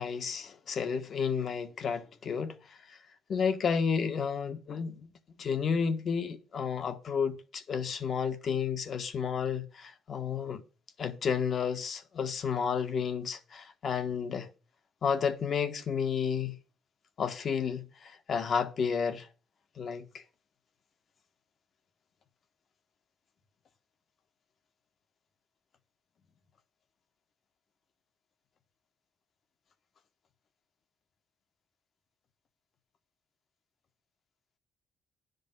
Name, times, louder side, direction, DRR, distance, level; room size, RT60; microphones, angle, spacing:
voice 1, 0.0-3.0 3.3-5.1 5.4-10.6 11.0-14.5 15.0-16.5 17.2-19.3 19.8-20.2, left 6 dB, 55° left, 1.4 m, -31 dB
10.0 x 5.3 x 7.9 m
cardioid pair, 90°, 0 cm